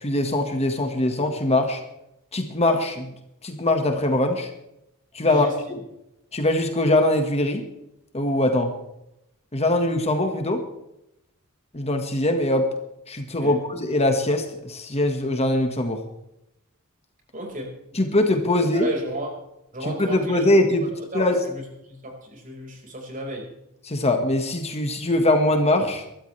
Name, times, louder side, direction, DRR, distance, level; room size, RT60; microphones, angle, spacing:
voice 1, 0.0-1.8 2.3-3.1 3.4-4.5 5.1-5.8 6.3-7.7 8.1-8.7 9.5-10.6 11.7-12.7 13.1-16.0 17.9-18.9 19.8-21.4 23.8-26.0, left 1 dB, 30° left, 5 dB, 1.6 m, -22 dB
voice 2, 5.2-5.5 13.4-13.6 17.3-17.7 18.7-19.3 19.7-20.4 20.8-23.5, right 1 dB, 40° right, 1 dB, 4.9 m, -34 dB
24.0 x 13.0 x 3.3 m, 0.85 s
head